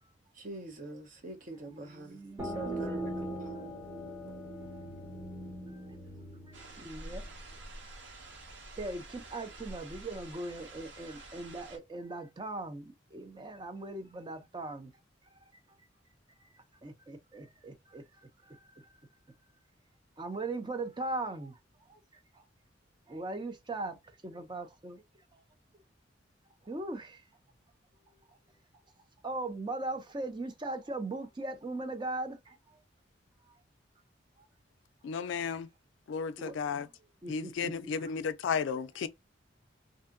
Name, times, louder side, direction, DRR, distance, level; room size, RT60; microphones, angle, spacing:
voice 1, 0.3-3.6 4.2-4.5, right 2 dB, 45° right, 0.8 m, -45 dB
voice 2, 1.7-2.9 6.8-7.2 8.8-12.8 13.1-14.9 16.8-18.0 18.5-18.6 20.2-21.5 21.9-22.0 23.1-24.0 24.2-25.0 26.7-27.2 29.2-32.6 36.4-36.5 37.2-37.9, right 2 dB, 25° right, 0.5 m, -39 dB
sound 1, 2.4-7.8, right 1 dB, 10° right, 0.9 m, -40 dB
sound 2, 6.5-11.8, right 1 dB, 90° right, 1.3 m, -48 dB
voice 3, 35.0-35.7 36.1-36.9 37.3-39.1, left 6 dB, 75° left, 0.3 m, -33 dB
2.7 x 2.5 x 2.4 m
head